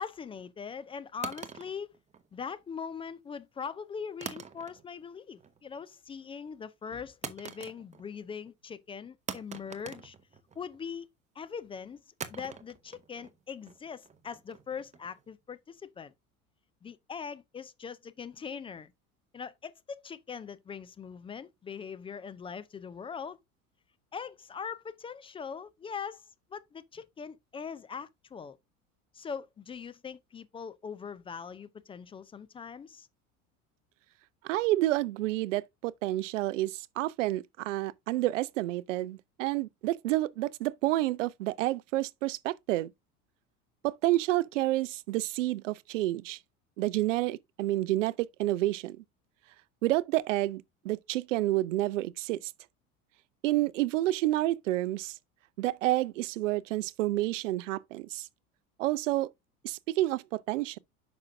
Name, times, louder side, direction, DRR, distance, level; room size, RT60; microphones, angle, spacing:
voice 1, 0.0-1.9 2.3-10.1 10.6-11.1 11.4-12.0 12.3-16.1 16.8-18.9 19.3-23.4 24.1-26.2 26.5-28.6 29.1-33.1, left 6 dB, 15° left, 0.4 m, -41 dB
sound 1, 1.2-2.6 4.2-5.0 5.4-5.8 7.2-8.2 8.5-8.6 9.3-10.8 12.2-15.2, right 6 dB, 15° right, 1.0 m, -44 dB
voice 2, 34.4-42.9 43.8-46.4 46.8-49.0 49.8-52.5 53.4-55.1 55.6-58.2 58.8-59.3 59.6-60.8, right 16 dB, 60° right, 0.6 m, -29 dB
9.5 x 6.0 x 2.6 m
figure-of-eight pair, 75°, 43 cm